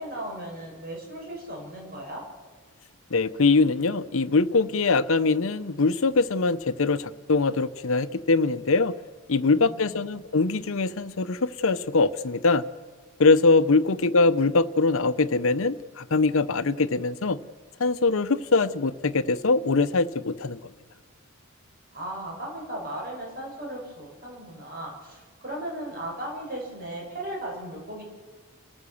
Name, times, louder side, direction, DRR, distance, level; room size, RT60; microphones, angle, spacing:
voice 1, 0.0-2.2 9.4-10.0 21.9-28.0, right 1 dB, 45° right, -1 dB, 6.3 m, -36 dB
voice 2, 3.1-9.0 9.3-12.7 13.2-17.4 17.8-20.6, left 3 dB, 65° left, 13 dB, 0.8 m, -22 dB
29.5 x 14.5 x 7.1 m, 1.5 s
head